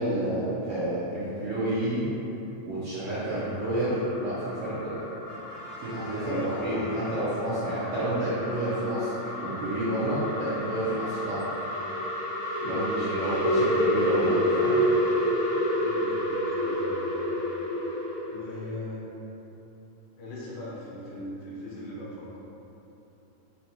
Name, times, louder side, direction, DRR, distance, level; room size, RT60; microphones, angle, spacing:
voice 1, 0.0-2.0 2.6-5.0 5.8-11.5 12.6-14.8, right 1 dB, 80° right, -11 dB, 1.3 m, -29 dB
sound 1, 3.3-18.4, equal, 45° left, 0.6 m, -29 dB
Brass instrument, 5.2-7.9, equal, 60° right, 0.5 m, -47 dB
voice 2, 6.2-6.9 12.6-13.4 15.8-17.3 18.3-19.1 20.2-22.4, left 1 dB, 80° left, -7 dB, 2.1 m, -39 dB
5.3 x 2.2 x 2.8 m, 3.0 s
omnidirectional pair, 3.4 m